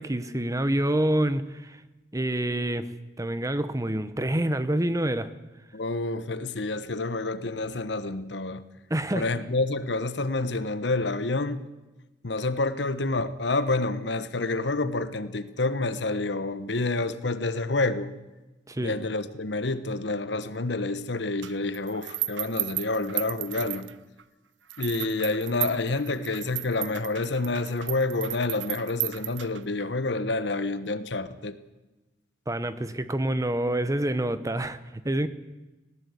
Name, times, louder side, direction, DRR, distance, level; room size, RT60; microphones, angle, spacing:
voice 1, 0.0-1.8 2.1-2.9 3.2-5.3 8.9-9.3 18.7-19.0 32.5-35.3, right 1 dB, 20° right, 0.9 m, -27 dB
voice 2, 5.7-8.7 9.1-11.6 12.2-18.1 18.8-23.9 24.8-31.5, left 2 dB, 70° left, 1.1 m, -28 dB
sound 1, 21.4-24.2 24.7-29.8, right 15 dB, 85° right, 0.8 m, -34 dB
20.0 x 17.0 x 8.3 m
head